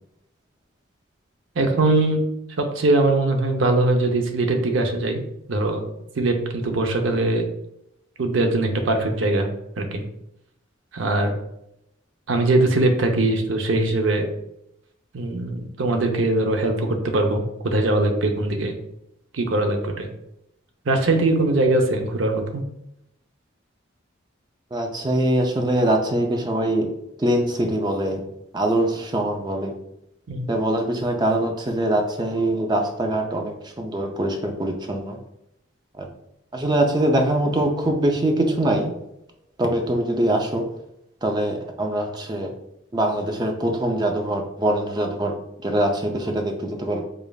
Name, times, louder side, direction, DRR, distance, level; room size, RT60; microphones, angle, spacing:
voice 1, 1.6-2.2 2.6-5.2 5.5-5.8 6.2-7.5 8.2-9.5 9.8-10.0 10.9-11.3 12.3-14.3 15.1-18.7 19.3-20.1 20.9-22.6 30.3-30.5, right 2 dB, 70° right, 4 dB, 0.6 m, -21 dB
voice 2, 24.7-26.9 27.2-28.2 28.5-29.7 30.5-35.2 36.0-36.1 36.5-38.9 39.6-40.6 41.2-42.5 42.9-47.0, right 1 dB, 20° right, 3 dB, 0.4 m, -23 dB
5.0 x 2.4 x 2.3 m, 0.82 s
head